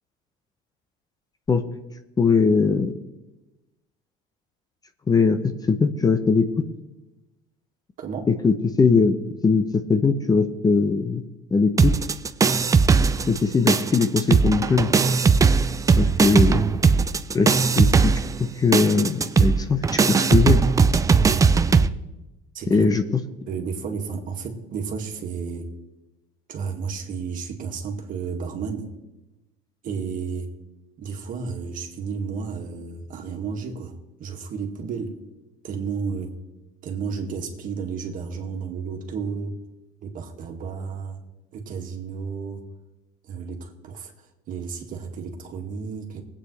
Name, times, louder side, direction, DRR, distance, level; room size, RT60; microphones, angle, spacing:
voice 1, 2.2-2.9 5.1-5.4 5.7-6.6 8.3-9.2 9.4-11.2 11.5-11.9 13.3-14.9 16.0-16.6 17.3-18.1 18.6-20.6 22.7-23.0, left 4 dB, 20° left, 9 dB, 0.8 m, -20 dB
voice 2, 8.0-8.3 22.5-22.9 23.5-25.7 26.5-28.9 29.8-30.5 31.0-35.2 35.6-36.4 36.8-39.6 40.0-41.2 41.5-42.7 43.2-46.2, right 5 dB, 50° right, 2 dB, 2.0 m, -32 dB
sound 1, 11.8-13.4 13.7-21.9, right 5 dB, 20° right, 0.5 m, -19 dB
20.0 x 8.7 x 3.3 m, 1.0 s
supercardioid pair, 105°, 18 cm